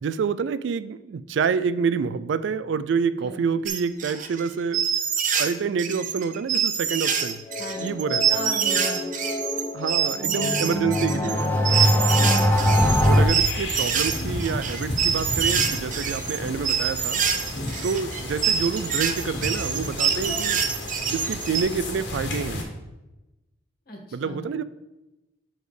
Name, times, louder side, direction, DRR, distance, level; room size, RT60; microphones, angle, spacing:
voice 1, 0.0-4.8 5.4-7.4 7.8-8.4 9.7-11.4 13.0-17.2 17.8-20.6 21.1-22.6 24.1-24.6, right 6 dB, 75° right, 15 dB, 0.3 m, -27 dB
sound 1, 3.7-5.5 5.8-21.6, right 7 dB, 45° right, 0.7 m, -25 dB
sound 2, 7.1-13.3, left 1 dB, 10° left, 0.7 m, -23 dB
voice 2, 7.6-7.9 8.3-9.0 23.8-24.4, equal, 55° left, 0 dB, 1.7 m, -37 dB
sound 3, 12.5-22.6, left 1 dB, 75° left, 1.6 m, -33 dB
6.4 x 4.9 x 5.0 m, 1.0 s
head